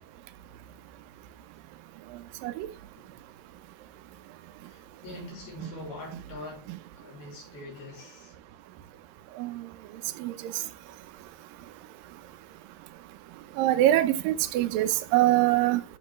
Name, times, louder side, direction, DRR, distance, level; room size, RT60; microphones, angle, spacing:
voice 1, 4.6-8.3, left 1 dB, 90° left, 5.5 m, -43 dB
voice 2, 13.6-15.8, right 14 dB, 75° right, 2.4 m, -23 dB
12.5 x 6.5 x 3.1 m
omnidirectional pair, 4.3 m